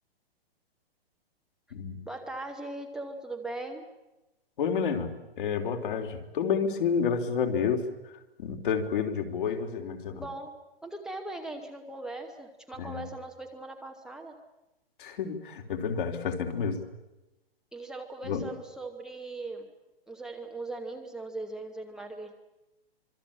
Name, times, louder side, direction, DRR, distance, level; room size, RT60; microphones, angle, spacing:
voice 1, 2.0-3.8 10.1-10.5 10.8-14.3 17.7-19.7 20.1-22.3, right 2 dB, ahead, 1 dB, 0.9 m, -39 dB
voice 2, 4.6-5.1 5.4-7.8 8.4-10.2 12.8-13.1 15.0-16.8 18.2-18.5, left 6 dB, 55° left, 5 dB, 3.6 m, -29 dB
25.5 x 23.5 x 8.6 m, 1.0 s
hypercardioid pair, 160°, 31 cm